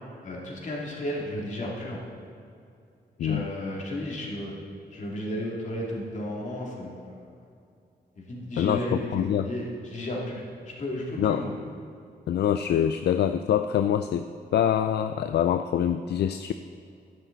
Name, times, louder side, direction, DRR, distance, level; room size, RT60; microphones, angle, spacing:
voice 1, 0.2-2.0 3.2-4.5 4.9-7.3 8.2-11.5, left 1 dB, 45° left, -3 dB, 2.6 m, -33 dB
voice 2, 3.2-3.5 8.6-9.5 11.2-11.4 12.3-16.5, left 9 dB, 70° left, 9 dB, 0.4 m, -25 dB
12.5 x 10.0 x 4.0 m, 2.5 s
wide cardioid pair, 140°, 18 cm